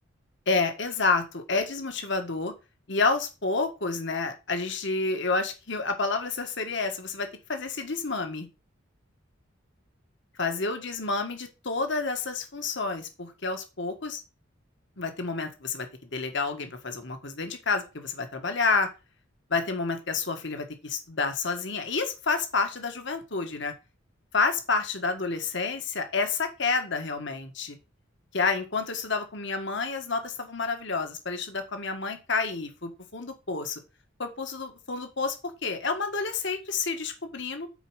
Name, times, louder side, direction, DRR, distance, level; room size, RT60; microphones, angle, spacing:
voice 1, 0.5-2.5 2.9-8.5 10.4-14.2 15.0-18.9 19.5-23.7 24.3-27.8 28.3-33.8 34.2-35.4 35.6-37.7, left 4 dB, 60° left, 6 dB, 1.7 m, -29 dB
8.0 x 4.7 x 6.3 m, 0.28 s
head